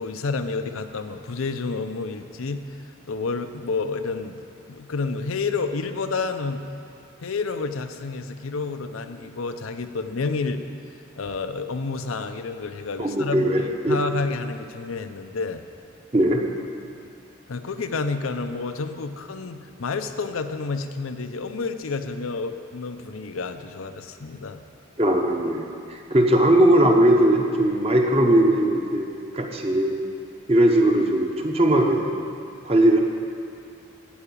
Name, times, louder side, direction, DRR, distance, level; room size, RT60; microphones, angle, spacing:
voice 1, 0.0-2.6 3.1-4.4 4.7-6.6 7.2-10.6 11.2-15.6 17.5-24.6, left 4 dB, 85° left, 8 dB, 0.6 m, -29 dB
voice 2, 13.0-14.0 16.1-16.4 25.0-29.1 29.3-29.9 30.5-32.1 32.6-33.0, right 1 dB, 30° right, 2 dB, 0.9 m, -19 dB
14.5 x 4.9 x 8.6 m, 2.5 s
head